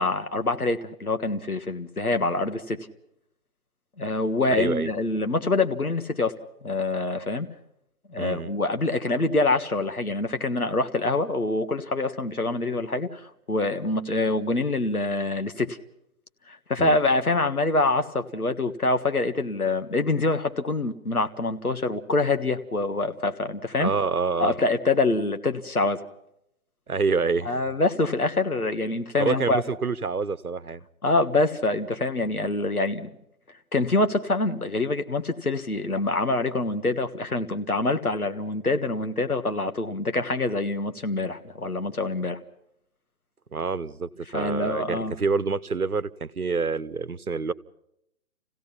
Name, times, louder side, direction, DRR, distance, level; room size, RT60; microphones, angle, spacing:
voice 1, 0.0-2.8 4.0-6.3 6.6-7.5 8.1-15.8 16.5-23.9 24.4-26.0 27.4-29.6 31.0-33.1 33.7-42.4 44.3-45.1, left 2 dB, 90° left, 8 dB, 1.7 m, -25 dB
voice 2, 4.5-4.9 8.2-8.5 16.8-17.0 23.8-24.5 26.9-27.6 29.2-30.9 43.5-47.5, right 4 dB, 90° right, 15 dB, 1.1 m, -27 dB
28.0 x 16.5 x 5.7 m, 0.79 s
figure-of-eight pair, 135°, 43 cm